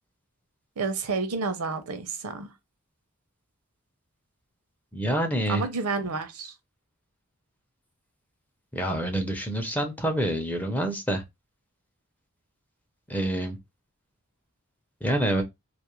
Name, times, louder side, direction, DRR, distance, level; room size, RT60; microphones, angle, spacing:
voice 1, 0.8-2.5 5.5-6.5, right 4 dB, 80° right, 0.6 m, -30 dB
voice 2, 4.9-5.6 8.7-11.2 13.1-13.6 15.0-15.4, right 1 dB, 5° left, 0.6 m, -27 dB
2.5 x 2.4 x 3.0 m
head